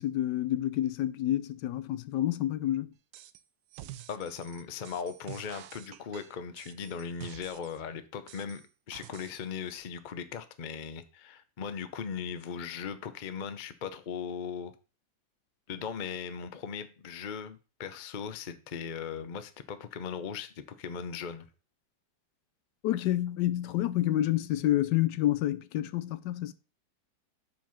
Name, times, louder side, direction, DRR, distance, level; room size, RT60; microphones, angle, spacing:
voice 1, 0.0-2.9 22.8-26.5, left 13 dB, 75° left, 1.1 m, -28 dB
sound 1, 3.1-3.4 3.7-7.8 8.3-9.4 9.7-9.8, right 13 dB, 75° right, 1.1 m, -48 dB
voice 2, 4.1-8.6 8.9-14.7 15.7-21.5, left 6 dB, 50° left, 0.5 m, -38 dB
7.5 x 4.5 x 5.7 m
omnidirectional pair, 1.9 m